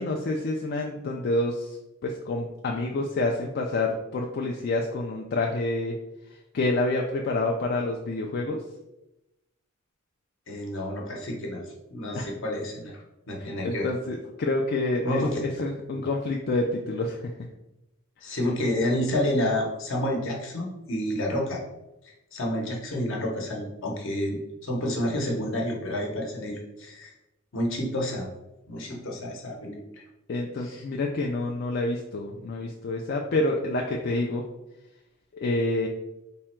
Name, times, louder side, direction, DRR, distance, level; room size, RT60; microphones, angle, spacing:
voice 1, 0.0-1.8 2.0-5.9 6.5-8.6 12.1-12.3 13.6-17.2 30.3-34.4 35.3-35.9, left 2 dB, 50° left, 0 dB, 0.4 m, -28 dB
voice 2, 10.5-11.6 11.9-13.0 13.3-13.9 15.0-15.4 15.9-16.0 18.2-21.6 22.0-27.1 27.5-28.3 28.7-30.0 30.6-30.8, left 1 dB, 65° left, 0 dB, 0.9 m, -29 dB
3.4 x 2.2 x 4.3 m, 0.94 s
head